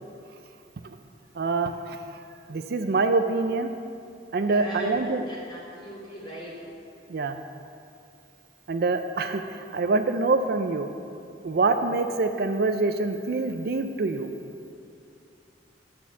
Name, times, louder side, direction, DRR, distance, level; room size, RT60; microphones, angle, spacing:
voice 1, 1.4-2.0 2.5-3.7 4.3-5.2 7.1-7.4 8.7-10.9 11.4-14.3, right 3 dB, 60° right, 7 dB, 0.4 m, -25 dB
voice 2, 4.4-6.6, equal, 25° left, -6 dB, 2.4 m, -41 dB
11.5 x 4.4 x 7.1 m, 2.6 s
head